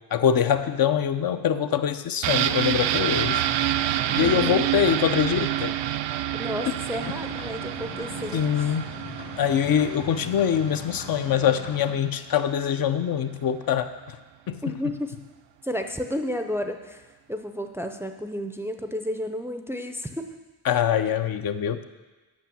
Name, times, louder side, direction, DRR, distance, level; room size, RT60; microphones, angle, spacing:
voice 1, 0.1-3.5 4.2-5.8 6.7-6.8 8.3-8.9 9.4-14.2 14.5-14.6 20.6-21.8, left 8 dB, 60° left, 9 dB, 0.6 m, -24 dB
sound 1, 2.2-11.9 12.2-12.3, right 11 dB, 80° right, 0.5 m, -28 dB
voice 2, 4.1-4.7 6.4-8.7 14.6-15.1 15.6-17.0 17.3-20.2, left 1 dB, 5° right, 6 dB, 0.4 m, -32 dB
sound 2, 6.9-11.9, left 5 dB, 75° left, 1.5 m, -41 dB
8.7 x 5.8 x 7.0 m, 1.2 s
cardioid pair, 120°, 41 cm